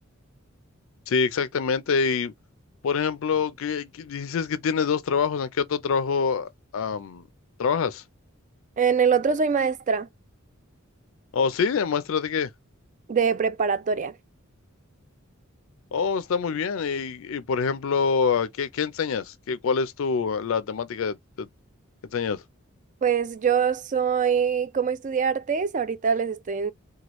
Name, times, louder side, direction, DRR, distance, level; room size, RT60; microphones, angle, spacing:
voice 1, 1.1-2.3 2.8-7.2 7.6-8.0 11.3-12.5 15.9-21.5 22.1-22.4, left 5 dB, 65° left, 0.4 m, -26 dB
voice 2, 8.8-10.1 13.1-14.1 23.0-26.7, right 6 dB, 35° right, 0.4 m, -23 dB
3.0 x 2.3 x 2.9 m
head